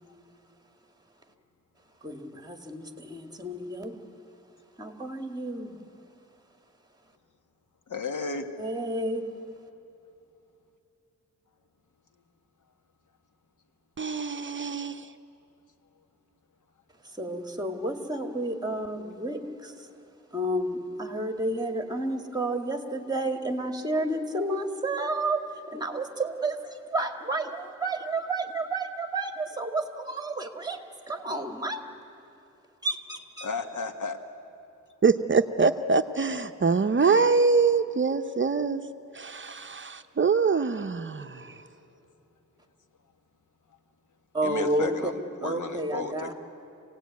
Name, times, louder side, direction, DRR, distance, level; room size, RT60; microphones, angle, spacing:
voice 1, 2.0-4.0 4.8-5.8 8.6-9.2 17.2-19.7 20.3-25.4 25.7-26.6 26.9-30.8 31.1-31.8 32.8-33.5 44.3-45.1 45.4-46.3, right 2 dB, 15° right, 5 dB, 2.1 m, -31 dB
voice 2, 7.9-8.5 33.4-34.2 44.4-46.3, left 4 dB, 75° left, 6 dB, 1.6 m, -34 dB
voice 3, 14.0-15.0 35.0-38.8 39.1-41.5, right 4 dB, 40° right, 8 dB, 0.7 m, -24 dB
26.5 x 17.5 x 9.4 m, 2.9 s
wide cardioid pair, 95°, 31 cm